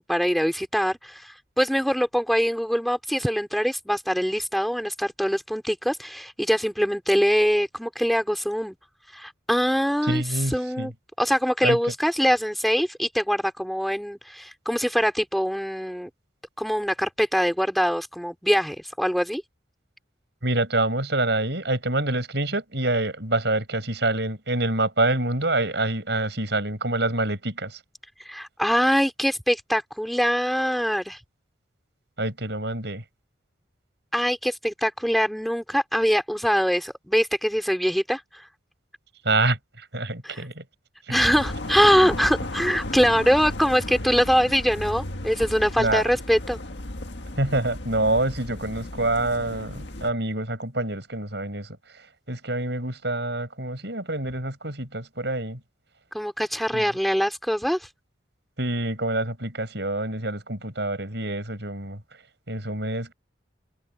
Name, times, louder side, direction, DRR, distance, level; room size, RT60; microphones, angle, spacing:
voice 1, 0.0-8.7 9.1-10.2 10.5-10.9 11.2-16.1 16.6-19.4 28.2-31.2 34.1-38.5 40.2-40.4 41.1-46.6 56.1-57.9, equal, ahead, 3.0 m, -23 dB
voice 2, 10.1-10.9 11.6-11.8 20.4-27.8 32.2-33.0 39.3-40.6 41.1-41.2 45.8-46.0 47.4-51.7 52.3-55.6 56.7-56.9 58.6-62.0 62.5-63.1, right 2 dB, 60° right, 7.0 m, -26 dB
sound 1, 41.1-50.1, left 1 dB, 65° left, 1.8 m, -34 dB
head